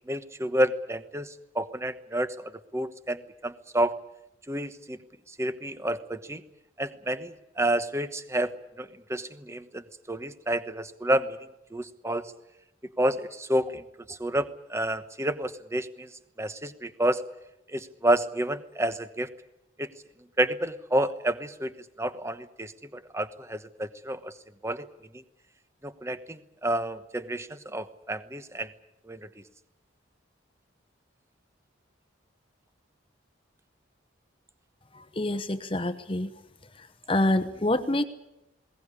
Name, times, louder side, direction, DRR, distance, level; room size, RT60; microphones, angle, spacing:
voice 1, 0.1-3.9 4.5-5.0 5.4-6.4 6.8-11.4 11.7-12.3 13.0-13.8 14.1-16.1 16.4-17.2 17.7-19.3 19.8-19.9 20.4-21.7 22.0-22.7 23.1-24.3 24.6-24.9 25.8-28.7 29.1-29.2, right 1 dB, 15° right, 12 dB, 1.1 m, -29 dB
voice 2, 35.2-36.3 37.1-38.0, left 1 dB, 25° left, 11 dB, 1.0 m, -26 dB
20.5 x 18.5 x 9.9 m, 0.89 s
head